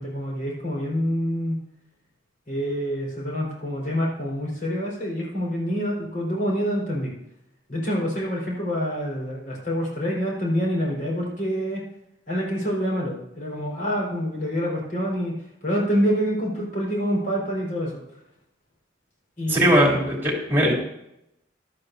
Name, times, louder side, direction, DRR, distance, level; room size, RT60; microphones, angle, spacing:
voice 1, 0.0-1.6 2.5-7.1 7.7-11.8 12.3-15.3 15.6-18.0 19.4-20.1, equal, 45° left, -4 dB, 4.9 m, -26 dB
voice 2, 19.5-20.7, equal, 10° right, -2 dB, 3.5 m, -19 dB
15.0 x 12.0 x 2.8 m, 0.82 s
head